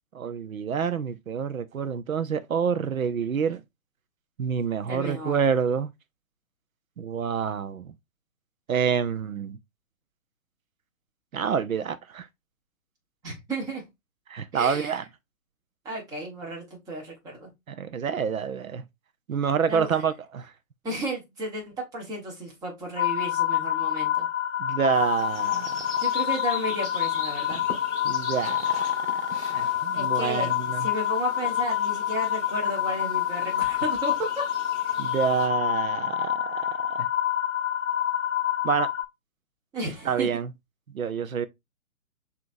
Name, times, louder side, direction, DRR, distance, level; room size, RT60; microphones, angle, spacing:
voice 1, 0.1-3.6 4.4-5.9 7.0-7.9 8.7-9.6 11.3-12.3 14.3-15.0 17.7-18.8 19.3-20.5 24.6-25.9 28.0-30.9 35.0-37.1 38.6-38.9 40.0-40.5 40.9-41.5, right 7 dB, 80° right, 0.7 m, -28 dB
voice 2, 4.9-5.4 13.2-13.8 14.5-15.0 15.8-17.5 19.7-20.0 20.8-24.3 26.0-27.6 29.9-34.5 39.7-40.3, right 1 dB, 10° right, 1.1 m, -33 dB
sound 1, 23.0-39.0, left 11 dB, 65° left, 0.6 m, -27 dB
sound 2, 24.9-35.5, left 2 dB, 10° left, 1.2 m, -43 dB
6.0 x 2.8 x 2.6 m
figure-of-eight pair, 145°, 41 cm